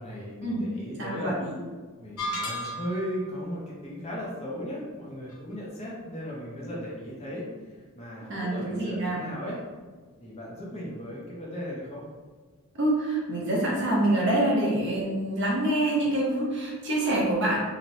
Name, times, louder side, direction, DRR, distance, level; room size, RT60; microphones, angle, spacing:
voice 1, 0.0-1.3 2.0-9.6 10.2-12.0, equal, 30° left, -4 dB, 0.5 m, -36 dB
voice 2, 1.0-1.5 8.3-9.3 12.7-17.6, right 1 dB, 50° right, -4 dB, 0.7 m, -26 dB
sound 1, 2.2-3.2, equal, 80° left, 0.6 m, -33 dB
2.9 x 2.0 x 2.7 m, 1.4 s
head